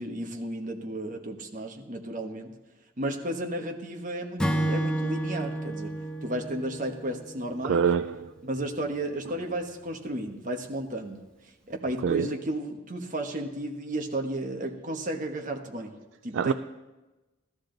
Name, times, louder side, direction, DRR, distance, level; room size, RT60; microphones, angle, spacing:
voice 1, 0.0-2.5 3.0-7.9 8.4-11.2 11.7-16.0 16.2-16.5, right 1 dB, 40° right, 1.3 m, -33 dB
Acoustic guitar / Strum, 4.4-7.8, right 1 dB, 5° left, 0.9 m, -31 dB
voice 2, 7.6-8.3 12.0-12.3 16.3-16.5, right 6 dB, 65° right, 0.3 m, -25 dB
15.0 x 12.5 x 3.9 m
head